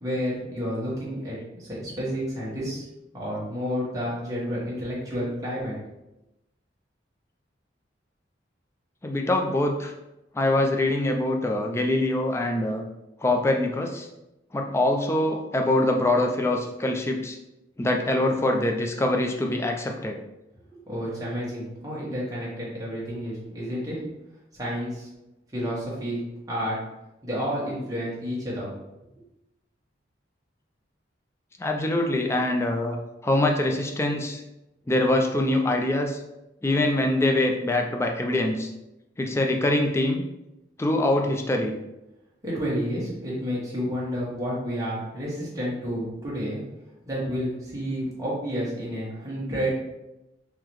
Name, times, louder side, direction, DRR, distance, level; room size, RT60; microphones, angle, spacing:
voice 1, 0.0-2.8 3.1-5.7 20.9-24.0 24.5-25.1 25.5-26.2 26.5-26.8 27.2-28.7 42.4-46.6 47.0-49.8, equal, 20° right, -7 dB, 1.3 m, -30 dB
voice 2, 9.0-9.9 10.3-12.8 13.2-14.1 14.5-17.4 17.8-20.2 31.6-33.0 33.2-34.4 34.9-36.2 36.6-38.7 39.2-40.2 40.8-41.8, left 1 dB, 15° left, 3 dB, 0.3 m, -24 dB
3.8 x 2.8 x 3.0 m, 0.92 s
head